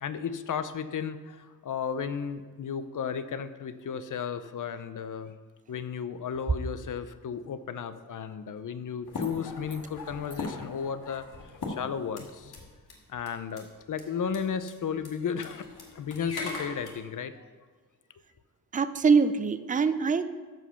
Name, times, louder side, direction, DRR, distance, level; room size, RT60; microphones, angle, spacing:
voice 1, 0.0-5.3 5.7-12.6 13.1-15.7 15.9-17.5, left 7 dB, 55° left, 12 dB, 0.6 m, -34 dB
sound 1, 9.1-12.6 12.9-13.0 13.3-13.6 14.0-14.1 14.3-14.4 14.7-14.8 15.0-16.9, left 3 dB, 75° left, 1.9 m, -39 dB
voice 2, 18.7-20.2, right 5 dB, 20° right, 12 dB, 0.4 m, -23 dB
13.5 x 5.1 x 5.6 m, 1.4 s
wide cardioid pair, 130°, 38 cm